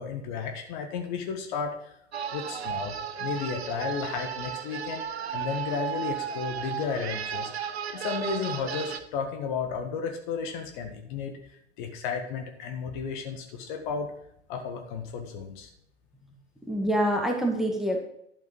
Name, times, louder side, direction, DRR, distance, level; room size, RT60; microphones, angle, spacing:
voice 1, 0.0-1.9 2.3-11.4 11.8-14.1 14.5-15.7, left 5 dB, 45° left, 5 dB, 1.8 m, -33 dB
sound 1, 2.1-9.0, right 8 dB, 65° right, 1.0 m, -34 dB
voice 2, 16.6-18.0, equal, ahead, 0 dB, 2.0 m, -26 dB
11.5 x 7.5 x 5.4 m, 0.73 s
figure-of-eight pair, 95°, 34 cm